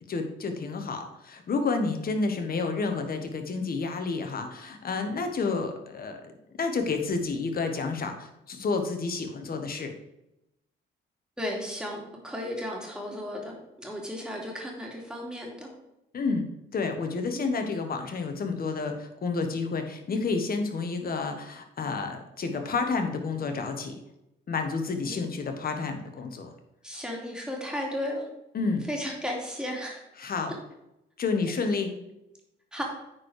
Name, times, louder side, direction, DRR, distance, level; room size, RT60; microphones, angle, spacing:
voice 1, 0.1-6.3 6.6-9.9 16.1-24.0 24.5-26.5 28.5-28.8 30.2-30.5 31.2-31.9, left 4 dB, 50° left, 5 dB, 1.5 m, -30 dB
voice 2, 11.4-15.7 17.3-17.6 25.0-25.3 26.8-28.3 28.9-30.0 31.5-31.6 32.7-32.8, equal, 5° right, -1 dB, 2.7 m, -35 dB
9.4 x 4.6 x 4.9 m, 0.87 s
cardioid pair, 90°, 20 cm